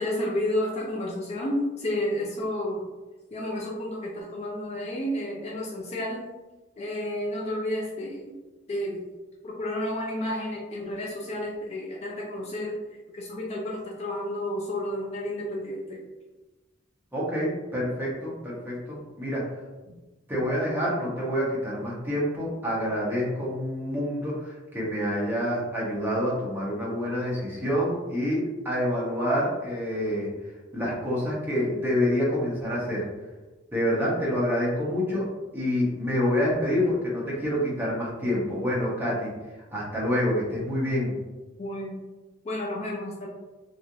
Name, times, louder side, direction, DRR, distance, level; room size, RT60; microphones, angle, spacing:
voice 1, 0.0-2.9 3.3-6.2 6.8-8.3 8.7-9.1 9.4-12.7 13.1-16.0 41.6-42.0 42.4-43.3, left 1 dB, 35° left, -1 dB, 0.4 m, -31 dB
voice 2, 17.1-19.5 20.3-30.3 30.7-33.1 33.7-35.3 35.5-39.3 39.7-41.2, equal, 10° right, -6 dB, 0.9 m, -27 dB
3.1 x 2.4 x 2.6 m, 1.1 s
head